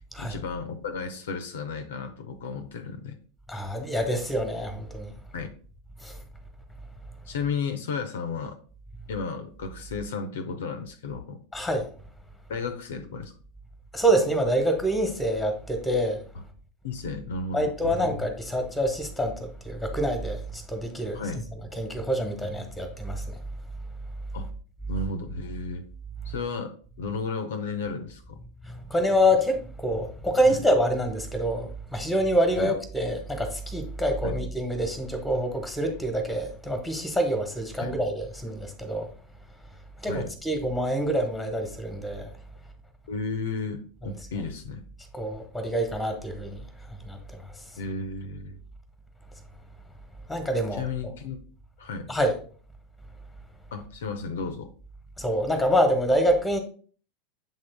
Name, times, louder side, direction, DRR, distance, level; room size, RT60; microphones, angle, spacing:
voice 1, 0.2-3.2 5.3-5.5 7.3-8.6 9.1-11.4 12.5-13.3 16.3-16.4 16.8-18.3 21.1-21.4 24.3-24.5 24.9-25.8 26.3-28.4 30.5-30.6 32.6-32.7 34.2-34.4 37.8-37.9 40.1-40.3 43.1-44.8 47.8-48.6 50.7-51.4 51.8-52.1 53.7-54.7, left 4 dB, 65° left, 0.7 m, -33 dB
voice 2, 3.5-5.1 6.0-6.2 11.5-11.9 13.9-16.2 17.5-21.2 21.8-23.4 28.6-39.1 40.0-42.3 44.0-44.1 45.1-46.6 47.0-47.4 50.3-50.8 52.1-52.3 55.2-56.6, equal, 5° left, 1.3 m, -26 dB
7.5 x 3.7 x 3.5 m
figure-of-eight pair, 85°, 0 cm